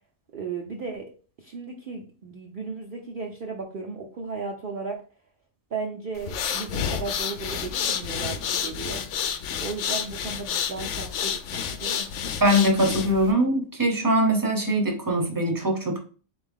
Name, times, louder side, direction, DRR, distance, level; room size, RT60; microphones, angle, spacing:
voice 1, 0.3-1.1 1.4-5.0 5.7-9.0 9.6-12.1, right 4 dB, 50° right, 0.7 m, -35 dB
sound 1, 6.2-13.3, left 8 dB, 75° left, 0.9 m, -30 dB
voice 2, 12.4-16.0, equal, 20° right, 0.8 m, -22 dB
3.9 x 3.4 x 3.6 m
omnidirectional pair, 1.3 m